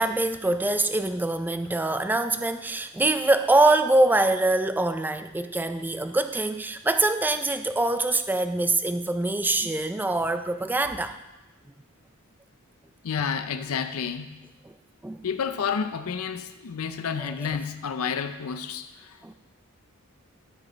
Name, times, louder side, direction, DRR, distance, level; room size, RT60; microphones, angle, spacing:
voice 1, 0.0-11.2 14.6-14.8 15.0-15.2 19.2-19.3, right 2 dB, 10° right, 9 dB, 0.3 m, -24 dB
voice 2, 13.0-14.4 15.2-19.3, left 6 dB, 85° left, 9 dB, 0.5 m, -30 dB
13.0 x 6.2 x 3.9 m, 1.0 s
head